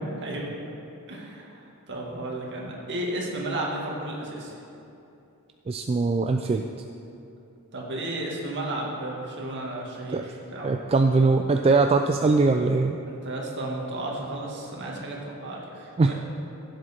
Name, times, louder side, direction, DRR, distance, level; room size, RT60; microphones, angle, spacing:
voice 1, 1.1-4.6 7.7-10.7 13.0-16.1, right 1 dB, 55° right, -2 dB, 1.9 m, -33 dB
voice 2, 5.7-6.7 10.1-10.3 10.6-13.0 16.0-16.1, right 3 dB, 25° right, 5 dB, 0.3 m, -21 dB
15.5 x 7.7 x 4.3 m, 2.8 s
head